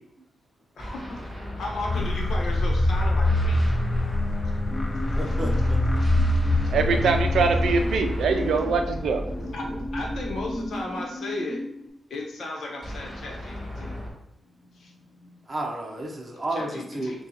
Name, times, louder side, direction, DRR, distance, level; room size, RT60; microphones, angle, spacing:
voice 1, 0.8-1.2 1.6-3.7 6.0-6.1 6.6-6.8 9.5-9.7 9.9-11.6 12.1-14.0 14.4-15.5 16.5-17.2, left 2 dB, 80° left, -1 dB, 0.9 m, -35 dB
sound 1, 0.8-11.0 12.8-14.1, left 1 dB, ahead, 1.3 m, -34 dB
sound 2, 1.8-8.4, left 1 dB, 20° left, 0.4 m, -24 dB
sound 3, 4.7-11.9, left 1 dB, 55° left, 1.2 m, -36 dB
voice 2, 5.1-5.8 9.3-9.7 15.5-17.3, right 1 dB, 20° right, -1 dB, 0.7 m, -32 dB
voice 3, 6.7-9.2, right 4 dB, 90° right, 6 dB, 0.4 m, -23 dB
6.6 x 2.3 x 2.9 m, 0.82 s
wide cardioid pair, 130°, 0 cm